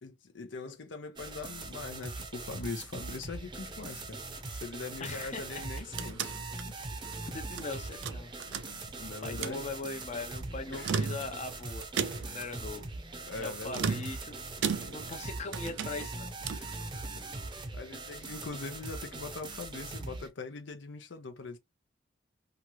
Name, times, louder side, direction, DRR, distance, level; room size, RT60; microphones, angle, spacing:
voice 1, 0.0-4.2 4.5-6.4 6.6-6.8 9.0-9.7 10.7-11.0 12.4-12.5 13.3-14.0 17.1-17.2 17.7-21.6, left 3 dB, 85° left, 0.7 m, -41 dB
sound 1, 1.2-20.3, right 3 dB, 25° right, 0.6 m, -41 dB
voice 2, 5.0-5.6 6.8-8.3 9.2-11.9 12.2-12.9 13.4-14.4 14.8-16.9 17.5-17.6, left 3 dB, 40° left, 0.6 m, -41 dB
sound 2, 5.5-7.7 8.0-9.0 9.3-9.6 10.7-11.5 12.0-12.5 13.7-15.2 15.5-16.7, right 6 dB, 85° right, 0.4 m, -35 dB
2.9 x 2.4 x 2.9 m
head